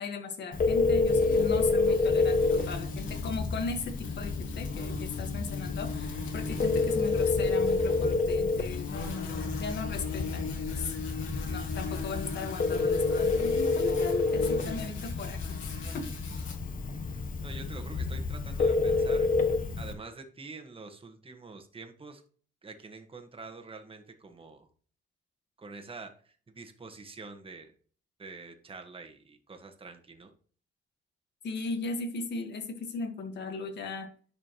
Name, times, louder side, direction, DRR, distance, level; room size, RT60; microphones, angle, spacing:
voice 1, 0.0-10.5 10.7-10.9 11.5-15.6 15.9-16.1 31.4-34.1, left 4 dB, 60° left, 6 dB, 1.8 m, -37 dB
Telephone, 0.5-19.9, left 3 dB, 45° left, 1.2 m, -29 dB
sound 1, 1.1-16.5, left 4 dB, 75° left, 2.8 m, -40 dB
voice 2, 17.4-19.3 19.8-22.2 22.6-24.7 25.6-27.7 28.2-30.3, right 3 dB, 25° right, 5 dB, 1.6 m, -46 dB
10.5 x 4.9 x 3.1 m, 0.43 s
cardioid pair, 90°, 20 cm